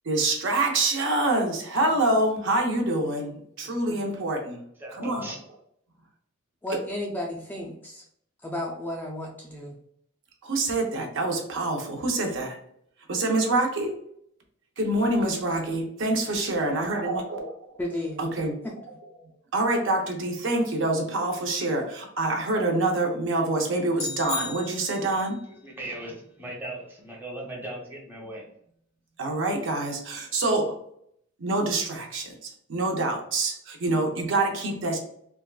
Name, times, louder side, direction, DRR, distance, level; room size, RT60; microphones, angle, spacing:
voice 1, 0.1-4.6 4.9-5.3 10.4-12.6 13.1-13.9 14.8-17.4 18.2-18.6 19.5-25.4 29.2-30.7 31.4-32.3 32.7-35.0, right 2 dB, 60° right, 2 dB, 0.6 m, -26 dB
voice 2, 3.6-4.0 6.6-8.0 8.4-9.7 17.8-18.2 18.6-18.8, left 1 dB, 10° left, -1 dB, 0.3 m, -33 dB
voice 3, 4.8-5.4 25.6-28.5, right 1 dB, 10° right, -3 dB, 0.7 m, -38 dB
sound 1, 23.9-25.3, left 5 dB, 80° left, 0.7 m, -35 dB
3.5 x 2.2 x 2.3 m, 0.70 s
head